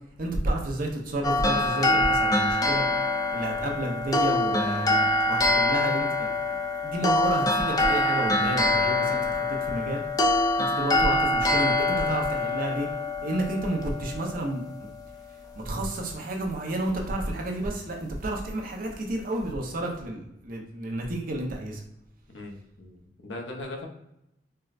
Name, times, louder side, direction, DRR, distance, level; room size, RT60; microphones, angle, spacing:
voice 1, 0.2-2.8 3.3-6.6 6.8-10.0 10.6-12.9 13.2-14.9 15.6-21.8, right 1 dB, 50° right, 1 dB, 0.7 m, -31 dB
sound 1, 1.2-14.5, left 2 dB, 20° left, 0.3 m, -25 dB
voice 2, 22.3-23.9, left 2 dB, 80° left, 2 dB, 0.7 m, -39 dB
4.4 x 2.1 x 2.4 m, 0.83 s
head